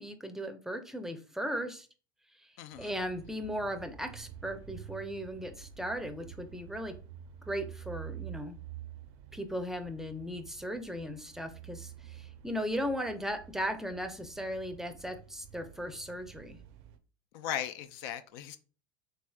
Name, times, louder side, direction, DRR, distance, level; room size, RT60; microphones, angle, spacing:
voice 1, 0.0-1.9 2.4-2.5 2.8-6.9 7.5-8.6 9.3-16.6, equal, 5° right, 0.5 m, -37 dB
voice 2, 2.6-2.9 17.3-18.6, left 10 dB, 65° left, 0.4 m, -37 dB
sound 1, 2.7-17.0, right 10 dB, 60° right, 0.5 m, -49 dB
3.6 x 3.1 x 2.3 m
hypercardioid pair, 85°, 12 cm